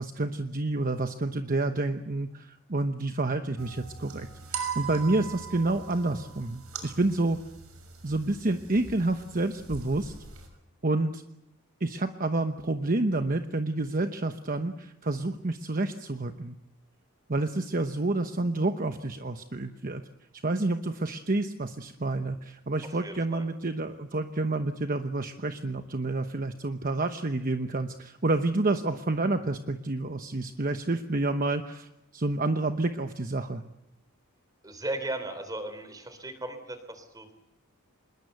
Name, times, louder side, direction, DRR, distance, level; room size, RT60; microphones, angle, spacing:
voice 1, 0.0-7.4 8.0-10.1 10.8-11.2 11.8-16.6 17.3-20.0 20.4-33.6, right 2 dB, 40° right, 7 dB, 1.0 m, -29 dB
sound 1, 3.6-10.5, right 6 dB, 85° right, 6.4 m, -40 dB
voice 2, 22.9-23.5 34.6-37.3, right 2 dB, 15° right, 10 dB, 3.8 m, -37 dB
26.5 x 21.5 x 8.0 m, 0.89 s
head